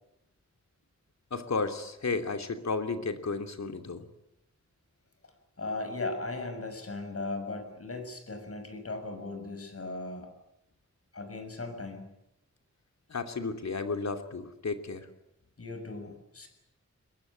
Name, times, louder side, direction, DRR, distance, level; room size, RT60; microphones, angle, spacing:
voice 1, 1.3-4.1 13.1-15.1, left 4 dB, 70° left, 6 dB, 2.9 m, -33 dB
voice 2, 5.6-10.3 11.1-12.1 15.6-16.5, left 2 dB, 55° left, 6 dB, 6.5 m, -37 dB
22.0 x 21.5 x 9.8 m, 0.82 s
wide cardioid pair, 105°, 29 cm